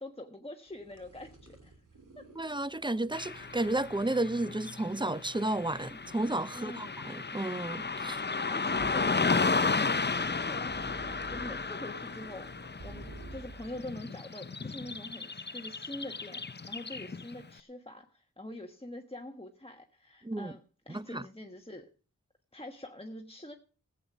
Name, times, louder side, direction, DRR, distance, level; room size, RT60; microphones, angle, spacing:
voice 1, 0.0-1.8 2.1-2.3 6.5-7.0 8.5-21.9 22.5-23.5, left 1 dB, 20° left, 1.3 m, -45 dB
sound 1, 0.7-14.0, right 2 dB, 90° right, 2.6 m, -52 dB
voice 2, 2.4-8.2 20.2-20.5 20.9-21.2, right 1 dB, 15° right, 0.6 m, -32 dB
Car passing by / Traffic noise roadway noise, 3.1-17.4, left 4 dB, 35° left, 0.6 m, -34 dB
15.0 x 8.3 x 6.1 m
wide cardioid pair, 50°, 31 cm